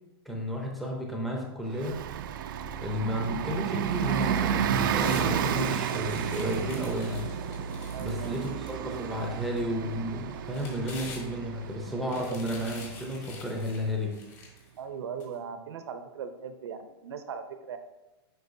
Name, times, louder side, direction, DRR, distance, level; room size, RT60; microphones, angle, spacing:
voice 1, 0.3-2.0 2.8-7.2 8.0-14.1, equal, ahead, -1 dB, 0.7 m, -32 dB
Bus, 1.7-14.0, right 9 dB, 50° right, 0.4 m, -32 dB
sound 1, 3.9-5.3 5.6-9.0 9.6-9.7 10.3-11.6 12.0-14.7 15.2-15.3, left 3 dB, 40° left, 1.6 m, -47 dB
voice 2, 7.9-8.5 12.3-12.5 14.8-17.8, right 6 dB, 75° right, 8 dB, 0.7 m, -39 dB
7.9 x 5.2 x 2.6 m, 1.0 s
supercardioid pair, 165°, 14 cm